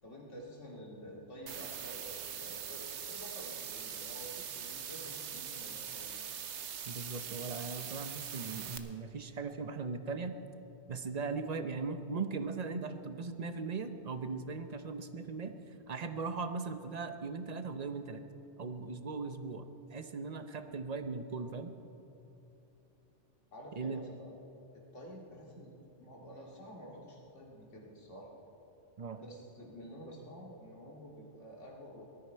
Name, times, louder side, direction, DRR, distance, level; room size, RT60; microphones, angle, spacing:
voice 1, 0.0-6.2 23.5-24.3 24.7-25.7 26.0-28.3 29.2-32.0, equal, 80° left, -2 dB, 2.7 m, -49 dB
sound 1, 1.5-8.8, right 8 dB, 70° right, 1.1 m, -42 dB
voice 2, 6.9-10.4 10.9-15.5 15.9-18.2 18.6-21.7 23.7-24.0 29.0-29.2, right 4 dB, 40° right, 9 dB, 0.7 m, -39 dB
19.5 x 13.0 x 4.5 m, 2.8 s
omnidirectional pair, 1.2 m